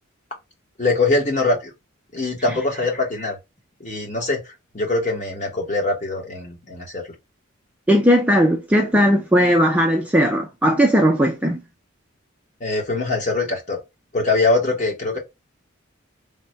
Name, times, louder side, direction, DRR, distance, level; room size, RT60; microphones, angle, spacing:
voice 1, 0.8-1.7 2.1-3.4 3.8-4.4 4.7-7.1 12.6-13.8 14.1-15.2, left 3 dB, 35° left, 1.0 m, -22 dB
voice 2, 7.9-11.6, equal, 5° right, 0.3 m, -17 dB
3.4 x 2.1 x 3.0 m
head